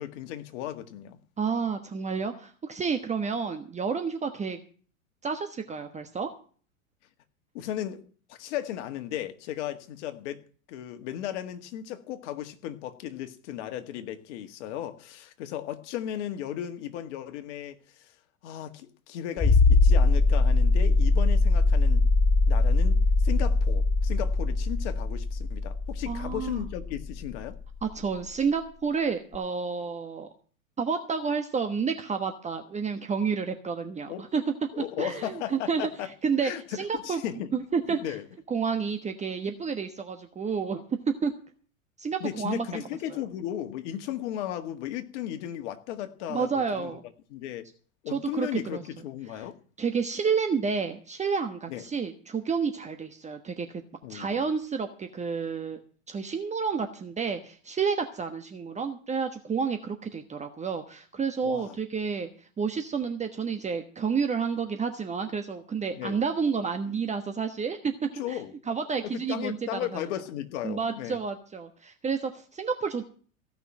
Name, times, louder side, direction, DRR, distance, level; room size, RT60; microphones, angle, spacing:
voice 1, 0.0-1.2 7.5-10.4 10.7-18.1 18.4-22.1 22.5-27.6 34.1-34.2 34.7-36.1 36.4-37.5 38.0-38.2 42.2-47.0 47.3-47.7 48.0-49.6 51.7-51.8 54.0-54.5 61.4-61.8 65.9-66.2 68.1-68.5 69.0-71.2, left 11 dB, 55° left, 1.9 m, -35 dB
voice 2, 1.4-4.6 5.2-6.3 26.1-26.6 27.8-30.3 30.8-37.2 37.5-38.2 38.5-40.8 41.2-41.3 42.0-42.6 43.1-43.2 46.3-47.0 48.1-48.8 49.8-53.8 54.1-55.8 56.1-67.9 68.3-68.4 68.7-70.0 70.6-73.0, right 5 dB, 15° right, 1.2 m, -30 dB
sound 1, 19.4-27.8 29.3-29.4, left 3 dB, 15° left, 0.8 m, -22 dB
16.0 x 6.0 x 8.8 m
hypercardioid pair, 100°, 42 cm